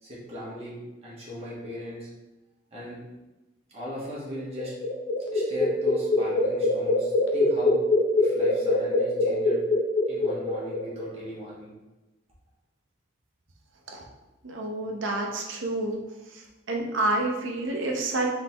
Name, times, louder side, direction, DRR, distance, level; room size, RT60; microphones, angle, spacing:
voice 1, 0.0-2.1 2.7-3.0 3.7-4.7 5.3-7.8 8.2-9.6 10.1-11.7, equal, 35° right, -6 dB, 1.3 m, -38 dB
sound 1, 4.4-11.1, left 2 dB, 70° left, 0.6 m, -24 dB
voice 2, 14.4-16.0 16.7-18.3, right 2 dB, 80° right, 1 dB, 0.7 m, -28 dB
3.9 x 3.6 x 2.9 m, 1.1 s
head